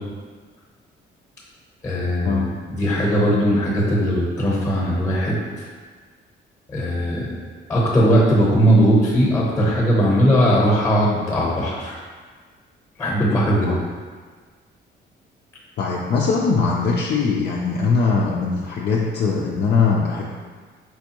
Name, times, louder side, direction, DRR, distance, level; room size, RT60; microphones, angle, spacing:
voice 1, 1.8-5.4 6.7-7.3 7.7-12.0 13.0-13.7, equal, 15° left, -4 dB, 0.9 m, -19 dB
voice 2, 15.8-20.3, left 4 dB, 55° left, -3 dB, 0.5 m, -21 dB
4.6 x 3.4 x 2.9 m, 1.5 s
cardioid pair, 135°, 20 cm